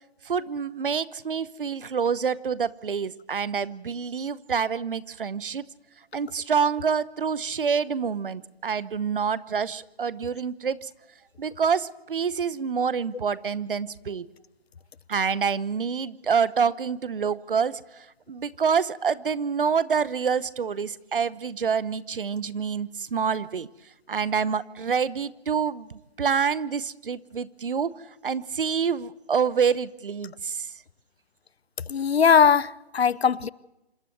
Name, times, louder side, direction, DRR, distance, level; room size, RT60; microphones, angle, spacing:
voice 1, 0.2-5.6 6.1-10.9 11.4-14.3 15.1-23.7 24.1-30.7, right 6 dB, 55° right, 0.9 m, -27 dB
voice 2, 31.9-33.5, left 6 dB, 75° left, 0.8 m, -20 dB
26.5 x 12.5 x 8.0 m
hypercardioid pair, 160°, 32 cm